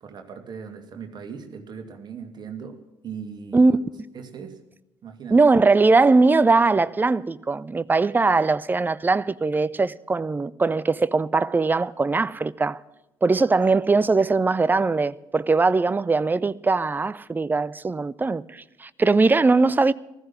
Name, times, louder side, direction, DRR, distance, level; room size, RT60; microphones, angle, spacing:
voice 1, 0.0-3.8 4.1-4.6 5.0-5.4, right 6 dB, 40° right, 2.3 m, -39 dB
voice 2, 5.3-12.8 13.2-19.9, right 3 dB, 15° right, 0.6 m, -20 dB
15.5 x 13.5 x 6.0 m
figure-of-eight pair, 50°, 12 cm